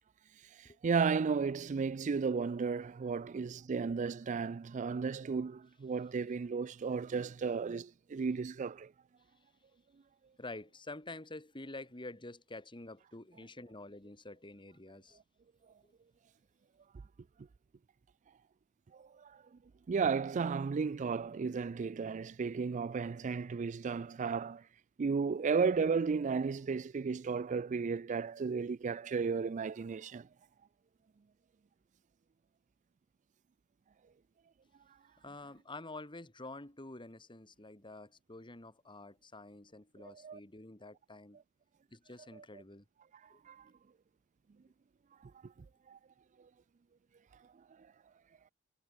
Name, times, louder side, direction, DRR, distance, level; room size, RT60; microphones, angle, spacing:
voice 1, 0.8-8.9 19.9-24.6 25.0-30.3 40.2-40.4 43.5-43.6 45.9-46.0, right 5 dB, 35° right, 0.3 m, -34 dB
voice 2, 10.4-15.2 15.8-15.9 35.2-41.4 41.9-42.8 43.3-43.4, left 2 dB, 20° left, 2.0 m, -48 dB
head